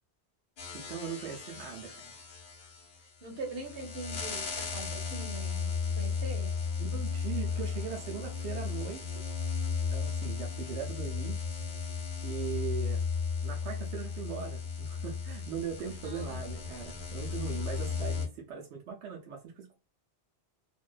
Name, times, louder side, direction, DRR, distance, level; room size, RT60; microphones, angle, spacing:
sound 1, 0.6-18.3, left 5 dB, 55° left, 0.8 m, -35 dB
voice 1, 0.7-2.1 2.6-2.7 6.8-9.2 9.9-11.4 12.2-13.1 13.4-19.9, right 7 dB, 90° right, 0.9 m, -40 dB
voice 2, 3.0-6.5 16.0-16.4, right 3 dB, 65° right, 1.1 m, -42 dB
2.5 x 2.1 x 2.3 m
omnidirectional pair, 1.1 m